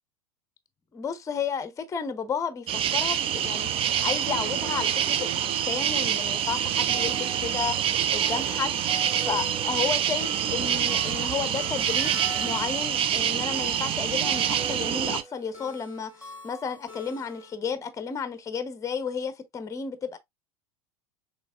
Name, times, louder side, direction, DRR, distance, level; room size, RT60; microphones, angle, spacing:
voice 1, 0.9-8.8 9.2-20.2, left 6 dB, 15° left, 0.8 m, -33 dB
sound 1, 2.7-15.2, right 9 dB, 30° right, 0.5 m, -26 dB
sound 2, 6.9-17.5, right 1 dB, 10° right, 2.1 m, -43 dB
6.2 x 3.1 x 2.4 m
figure-of-eight pair, 80°, 18 cm